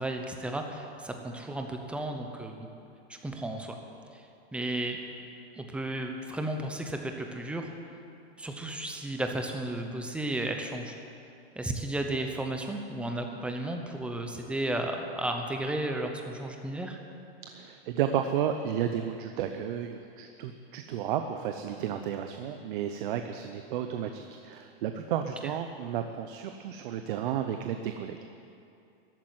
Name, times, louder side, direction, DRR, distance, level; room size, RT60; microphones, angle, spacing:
voice 1, 0.0-2.7 3.1-3.8 4.1-4.2 4.5-5.0 5.6-7.7 8.4-10.9 11.5-17.0 25.4-25.5, right 1 dB, 5° right, 3 dB, 0.8 m, -33 dB
voice 2, 17.5-28.2, right 9 dB, 50° right, 7 dB, 0.8 m, -32 dB
14.0 x 8.9 x 9.6 m, 2.6 s
supercardioid pair, 160°, 32 cm